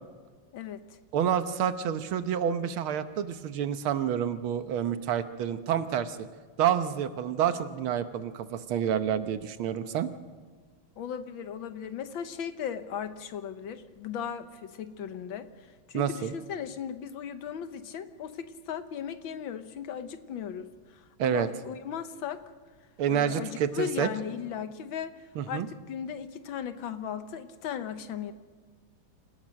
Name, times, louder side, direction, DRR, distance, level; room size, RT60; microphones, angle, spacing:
voice 1, 0.5-0.8 11.0-15.5 15.9-22.4 23.1-25.2 25.5-28.3, left 8 dB, 75° left, 10 dB, 1.7 m, -37 dB
voice 2, 1.1-6.2 6.6-10.1 15.9-16.3 21.2-21.5 23.0-24.1 25.3-25.7, right 9 dB, 85° right, 10 dB, 1.9 m, -28 dB
27.5 x 16.5 x 6.4 m, 1.5 s
omnidirectional pair, 2.2 m